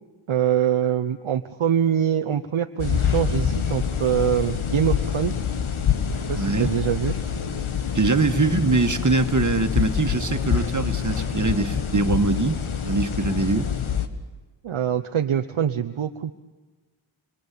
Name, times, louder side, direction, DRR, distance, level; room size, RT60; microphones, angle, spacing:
voice 1, 0.3-5.4 6.3-7.2 14.6-16.3, right 9 dB, 80° right, 6 dB, 1.0 m, -24 dB
sound 1, 2.8-14.1, left 7 dB, 80° left, 1.9 m, -26 dB
voice 2, 6.4-6.7 7.9-13.7, right 3 dB, 35° right, 6 dB, 1.9 m, -23 dB
27.5 x 24.0 x 8.6 m, 1.3 s
cardioid pair, 45°, 48 cm